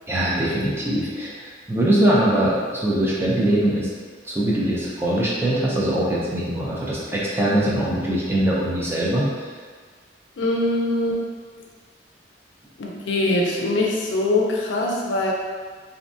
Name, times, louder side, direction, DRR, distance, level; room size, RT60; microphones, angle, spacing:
voice 1, 0.1-3.9 4.2-9.5, right 1 dB, 15° right, -6 dB, 0.4 m, -22 dB
voice 2, 10.4-11.2 12.8-15.3, left 2 dB, 75° left, -1 dB, 0.4 m, -22 dB
2.6 x 2.2 x 2.6 m, 1.5 s
head